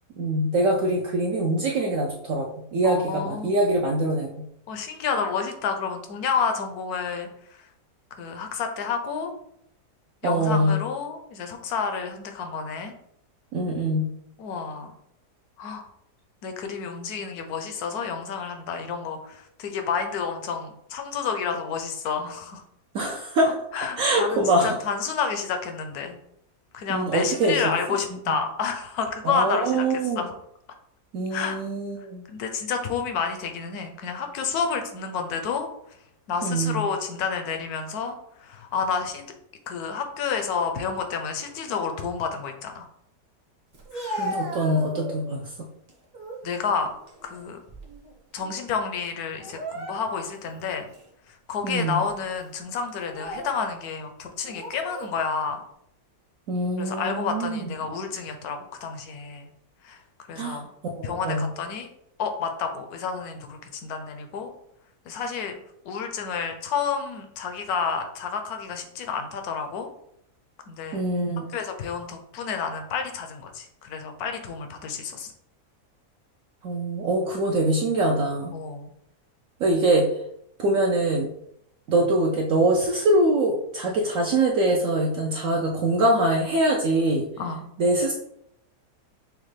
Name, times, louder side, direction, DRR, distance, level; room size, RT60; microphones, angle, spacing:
voice 1, 0.2-4.3 10.2-10.8 13.5-14.1 22.9-23.5 24.0-24.7 26.9-27.6 29.2-30.2 31.1-32.3 36.4-36.8 44.2-45.4 51.6-52.0 56.5-57.8 60.4-60.6 61.0-61.5 70.9-71.5 76.6-78.5 79.6-80.1 80.6-81.3 81.9-87.3 87.8-88.1, right 1 dB, 65° right, -1 dB, 0.8 m, -23 dB
voice 2, 2.8-3.5 4.7-7.3 7.6-7.7 8.2-9.3 10.2-12.9 14.4-14.9 15.6-15.9 16.4-22.6 23.7-26.2 26.7-30.3 31.3-31.6 32.3-35.7 36.3-39.3 39.7-42.9 43.9-44.3 46.4-46.9 47.2-47.6 48.3-50.9 51.3-55.6 56.8-59.5 59.8-60.0 60.3-60.7 61.0-61.9 62.2-64.5 65.1-65.6 65.8-69.9 70.7-71.0 71.5-75.3 78.5-78.9 87.4-87.6, left 6 dB, 70° left, 5 dB, 1.1 m, -30 dB
Speech, 43.7-45.4 45.9-46.5 46.9-48.1 48.4-48.6 49.4-50.4 50.9-51.1 51.8-52.1 52.9-53.6 54.4-55.1, equal, 35° right, 0.7 m, -35 dB
6.3 x 2.2 x 3.2 m, 0.75 s
omnidirectional pair, 1.8 m